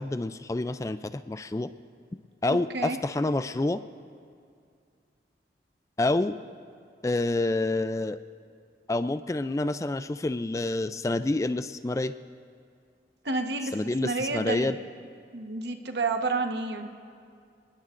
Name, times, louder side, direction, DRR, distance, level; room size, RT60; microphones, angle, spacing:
voice 1, 0.0-1.7 2.4-3.8 6.0-6.3 7.0-8.2 8.9-12.1 13.7-14.8, left 2 dB, 20° left, 12 dB, 0.3 m, -28 dB
voice 2, 2.5-3.0 13.2-13.7 14.0-14.7 15.3-16.9, right 3 dB, 75° right, 5 dB, 1.2 m, -30 dB
27.5 x 20.5 x 2.6 m, 2.3 s
head